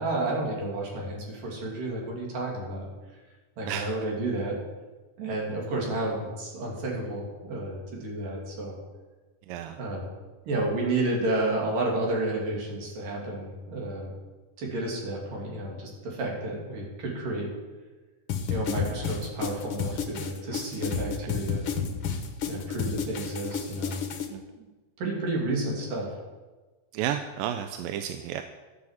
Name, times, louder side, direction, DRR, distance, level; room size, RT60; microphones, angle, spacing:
voice 1, 0.0-2.9 3.6-4.6 5.2-8.7 9.7-10.1 10.5-14.1 14.6-17.5 18.5-21.6 22.5-24.0 24.6-24.7 25.0-26.1, right 2 dB, 65° right, -2 dB, 4.6 m, -31 dB
voice 2, 9.5-9.8 24.3-24.4 26.9-28.4, right 10 dB, 85° right, 7 dB, 2.3 m, -32 dB
sound 1, 18.3-24.3, left 6 dB, 60° left, 1.5 m, -31 dB
13.0 x 8.5 x 7.5 m, 1.3 s
omnidirectional pair, 4.1 m